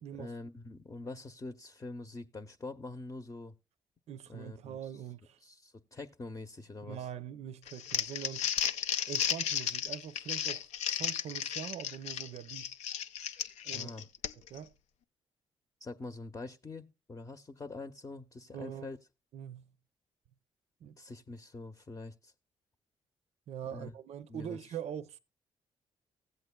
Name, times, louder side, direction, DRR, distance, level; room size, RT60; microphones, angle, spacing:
voice 1, 0.1-3.5 4.3-4.9 5.4-7.1 13.7-14.1 15.8-19.0 21.0-22.3 23.7-23.9 24.3-24.6, left 3 dB, 25° left, 0.7 m, -45 dB
voice 2, 4.1-5.4 6.8-8.5 9.1-10.7 11.0-12.7 13.6-13.9 14.5-14.7 18.5-18.9 19.3-19.7 20.8-21.0 23.5-25.2, right 9 dB, 70° right, 0.6 m, -43 dB
Crumpling crinkling, 7.7-14.6, left 9 dB, 80° left, 0.5 m, -34 dB
15.5 x 7.8 x 2.2 m
cardioid pair, 75°, 11 cm